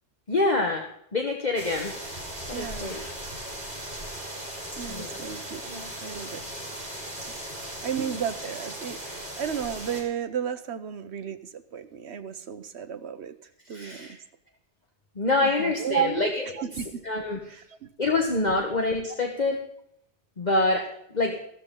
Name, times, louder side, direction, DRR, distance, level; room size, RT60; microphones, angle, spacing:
voice 1, 0.3-0.8 1.1-1.9 2.5-3.0 4.9-5.1 13.7-14.1 15.2-16.3 17.0-17.4 18.0-19.6 20.4-20.9 21.1-21.4, left 2 dB, 40° left, 2 dB, 1.4 m, -25 dB
sound 1, 1.6-10.0, right 1 dB, 45° right, 5.2 m, -38 dB
voice 2, 2.5-2.9 4.8-5.6 6.0-6.4 7.3-7.4 7.8-13.3 13.7-14.2 15.4-16.3 16.5-17.0 17.5-17.9, right 8 dB, 65° right, 11 dB, 1.2 m, -33 dB
15.0 x 13.5 x 3.8 m, 0.71 s
omnidirectional pair, 1.2 m